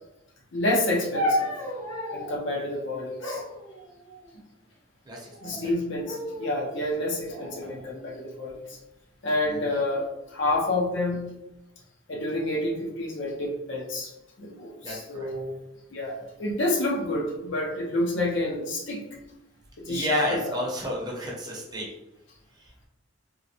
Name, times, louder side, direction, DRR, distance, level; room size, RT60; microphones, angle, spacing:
voice 1, 0.5-1.5 2.1-3.4 5.4-8.8 9.2-11.3 12.1-14.1 14.4-15.5 15.9-19.0 19.8-20.6, left 1 dB, 65° left, 0 dB, 0.6 m, -28 dB
sound 1, 1.1-2.4 3.2-4.4 5.2-5.7 6.0-6.6 7.3-8.6 9.4-9.8, left 1 dB, 80° left, 1.0 m, -33 dB
voice 2, 5.1-5.7 9.4-9.7 14.8-15.3 19.9-21.9 22.6-22.9, equal, 20° right, -3 dB, 0.7 m, -32 dB
3.7 x 2.1 x 2.8 m, 0.90 s
head